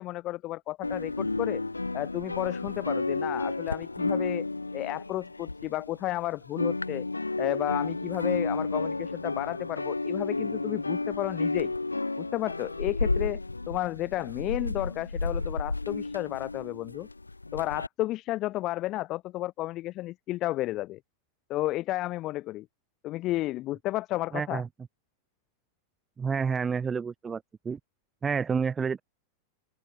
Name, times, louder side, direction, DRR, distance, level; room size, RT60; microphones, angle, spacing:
voice 1, 0.0-1.6 1.9-4.5 4.7-7.1 7.4-11.7 12.2-13.4 13.7-17.1 17.5-21.0 21.5-22.7 23.0-24.6, left 16 dB, 35° left, 3.7 m, -32 dB
sound 1, 0.8-6.2 6.4-17.9, left 3 dB, 80° left, 2.5 m, -32 dB
voice 2, 24.3-24.7 26.2-27.8 28.2-29.0, right 6 dB, 15° right, 2.5 m, -29 dB
open air
figure-of-eight pair, 90°, 0 cm